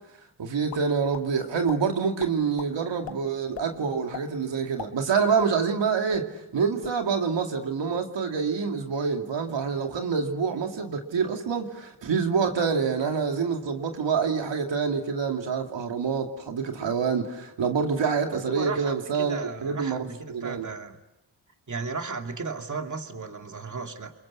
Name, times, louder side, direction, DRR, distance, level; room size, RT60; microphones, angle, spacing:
voice 1, 0.4-20.7, right 5 dB, 85° right, 2.6 m, -27 dB
sound 1, 0.7-1.3 1.7-1.8 2.2-2.7 3.0-3.2 3.5-3.7 4.1-4.3 4.6-5.8 6.1-6.2 6.6-7.0, left 8 dB, 90° left, 1.7 m, -39 dB
voice 2, 18.3-21.0 21.7-24.1, right 4 dB, 45° right, 2.7 m, -35 dB
30.0 x 22.5 x 8.5 m
cardioid pair, 75°, 43 cm